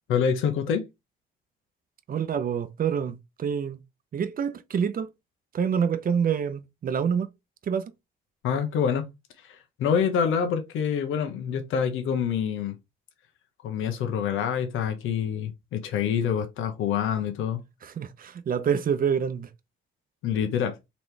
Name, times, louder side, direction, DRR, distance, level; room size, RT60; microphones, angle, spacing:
voice 1, 0.1-0.8 8.4-9.0 9.4-12.7 13.6-17.6 20.2-20.8, left 7 dB, 85° left, 0.9 m, -26 dB
voice 2, 2.1-3.8 4.1-5.1 5.5-7.3 7.6-7.9 17.8-19.5, right 7 dB, 45° right, 0.7 m, -27 dB
4.2 x 3.0 x 3.3 m
cardioid pair, 90°, 20 cm